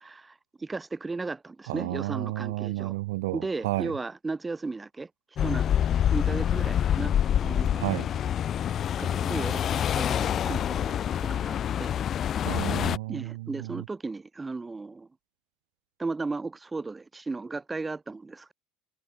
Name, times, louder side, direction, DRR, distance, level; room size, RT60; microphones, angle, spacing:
voice 1, 0.0-2.9 3.3-5.1 5.4-7.1 7.4-8.3 9.0-12.0 13.1-15.1 16.0-18.5, right 3 dB, 15° right, 3.2 m, -35 dB
voice 2, 1.7-3.9 7.8-8.1 12.4-13.8, right 20 dB, 85° right, 4.4 m, -32 dB
sound 1, 5.4-13.0, left 9 dB, 45° left, 0.8 m, -26 dB
supercardioid pair, 90°, 0 cm